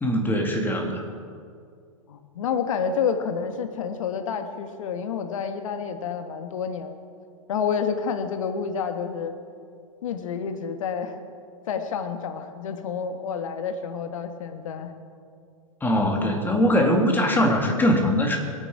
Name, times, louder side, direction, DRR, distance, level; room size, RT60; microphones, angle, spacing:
voice 1, 0.0-1.0 15.8-18.4, equal, 10° left, 2 dB, 2.1 m, -21 dB
voice 2, 2.1-7.0 7.5-9.3 10.0-11.2 11.7-14.9, left 6 dB, 65° left, 7 dB, 1.5 m, -29 dB
22.5 x 9.0 x 4.8 m, 2.3 s
hypercardioid pair, 110°, 18 cm